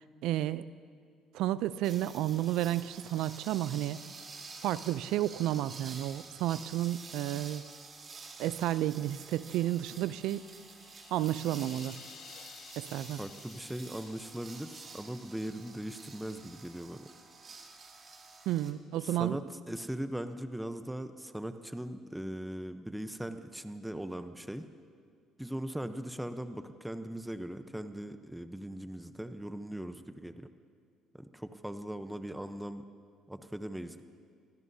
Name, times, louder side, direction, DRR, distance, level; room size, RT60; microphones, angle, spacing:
voice 1, 0.2-0.6 1.3-4.0 4.6-7.6 8.4-10.4 11.1-12.0 12.8-13.2 18.5-19.4, right 13 dB, 80° right, 16 dB, 0.4 m, -31 dB
sound 1, 1.8-18.7, right 4 dB, 40° right, 1.8 m, -49 dB
sound 2, 10.4-16.5, left 8 dB, 60° left, 0.9 m, -55 dB
voice 2, 13.2-17.1 19.0-24.7 25.4-30.5 31.2-32.9 33.3-34.0, right 1 dB, 5° right, 9 dB, 0.8 m, -40 dB
25.0 x 16.0 x 2.8 m, 2.2 s
supercardioid pair, 85°, 0 cm